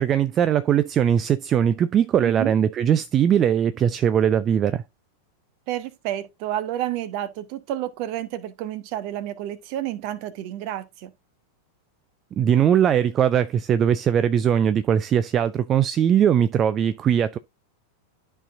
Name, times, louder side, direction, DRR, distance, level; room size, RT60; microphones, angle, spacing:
voice 1, 0.0-4.8 12.4-17.4, right 9 dB, 30° right, 0.4 m, -20 dB
voice 2, 2.2-2.5 5.7-11.1, right 12 dB, 45° right, 1.0 m, -30 dB
12.5 x 4.2 x 2.5 m
figure-of-eight pair, 90°, 0 cm